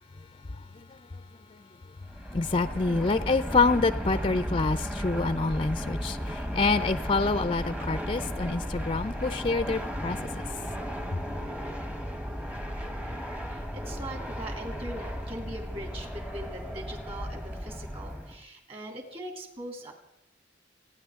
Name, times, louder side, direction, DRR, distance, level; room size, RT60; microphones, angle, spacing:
voice 1, 0.7-1.2 1.5-1.6 2.3-10.2 11.1-11.2, left 3 dB, 30° left, 12 dB, 0.5 m, -27 dB
Fixed-wing aircraft airplane, 2.0-18.4, equal, 5° right, 1.0 m, -35 dB
voice 2, 13.5-19.9, right 1 dB, 30° right, 2 dB, 2.9 m, -41 dB
27.5 x 10.0 x 3.6 m, 0.88 s
head